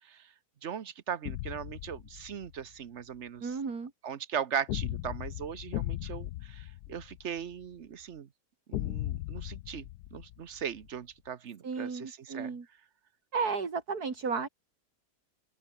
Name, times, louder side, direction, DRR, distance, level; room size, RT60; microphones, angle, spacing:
voice 1, 0.6-3.5 4.0-8.3 8.7-12.5, right 8 dB, 50° right, 1.2 m, -39 dB
sound 1, 1.2-2.6 4.7-7.6 8.7-10.9, left 16 dB, 85° left, 1.1 m, -37 dB
voice 2, 3.4-3.9 11.6-12.7 13.3-14.5, right 5 dB, 75° right, 3.2 m, -33 dB
open air
omnidirectional pair, 1.6 m